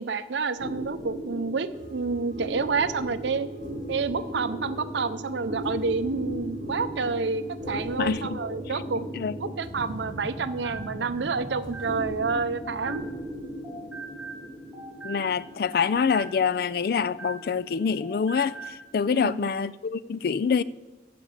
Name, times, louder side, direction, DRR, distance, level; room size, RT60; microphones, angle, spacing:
voice 1, 0.0-3.5 3.9-9.0 9.4-13.1 19.1-19.5, right 4 dB, 80° right, 0.6 m, -29 dB
sound 1, 0.6-19.3, equal, 50° right, 4.5 m, -38 dB
sound 2, 1.7-13.3, equal, 25° right, 1.8 m, -44 dB
voice 2, 8.0-8.4 9.1-9.5 15.0-20.6, left 6 dB, 55° left, 0.3 m, -26 dB
sound 3, 10.1-13.4 13.6-17.7 18.0-18.8, right 3 dB, 5° right, 2.6 m, -42 dB
13.5 x 5.2 x 7.8 m
head